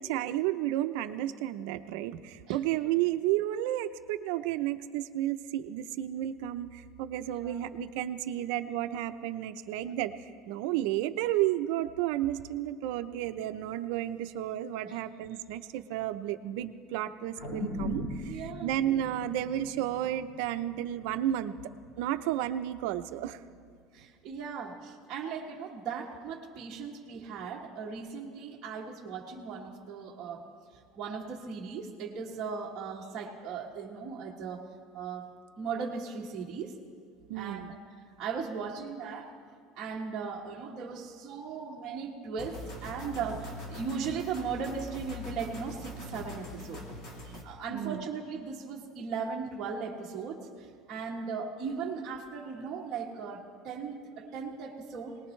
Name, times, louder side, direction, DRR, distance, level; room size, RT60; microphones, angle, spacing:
voice 1, 0.0-10.1 10.5-21.6 22.0-23.4 37.3-37.7 47.7-48.0, right 13 dB, 65° right, 10 dB, 0.6 m, -32 dB
sound 1, 17.4-21.9 22.3-22.4, equal, 60° left, 4.4 m, -39 dB
voice 2, 18.3-18.7 23.9-30.5 31.0-34.7 34.9-35.3 35.6-36.7 37.3-37.8 38.2-39.3 39.8-46.9 47.4-55.2, right 5 dB, 25° right, -5 dB, 1.3 m, -37 dB
sound 2, 42.4-47.4, left 1 dB, 40° left, 1.7 m, -43 dB
22.5 x 19.0 x 3.2 m, 2.1 s
cardioid pair, 175°, 0 cm